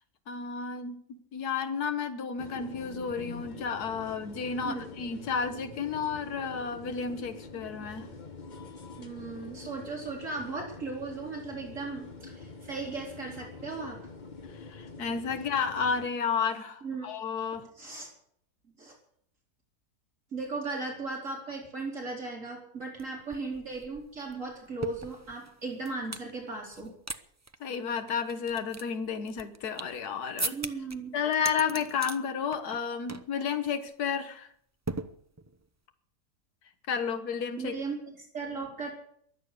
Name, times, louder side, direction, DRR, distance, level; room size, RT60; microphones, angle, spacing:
voice 1, 0.3-8.1 14.5-17.7 27.6-30.6 31.1-34.5 36.9-37.7, left 6 dB, 80° left, 9 dB, 1.8 m, -32 dB
sound 1, 2.4-16.1, left 3 dB, 30° left, 1.3 m, -45 dB
voice 2, 9.0-14.0 16.8-17.1 17.8-18.1 18.8-18.9 20.3-26.9 30.5-31.1 37.6-38.9, right 3 dB, 55° right, 0 dB, 4.7 m, -37 dB
sound 2, 23.0-23.1 23.3-26.3 26.7-27.2 27.4-27.6 28.1-30.0 30.4-31.0 31.3-32.2 32.5-32.8 33.1-33.3 33.7-33.9 34.9-35.6, right 2 dB, 20° right, 0.4 m, -38 dB
23.0 x 8.8 x 6.7 m, 0.65 s
omnidirectional pair, 1.6 m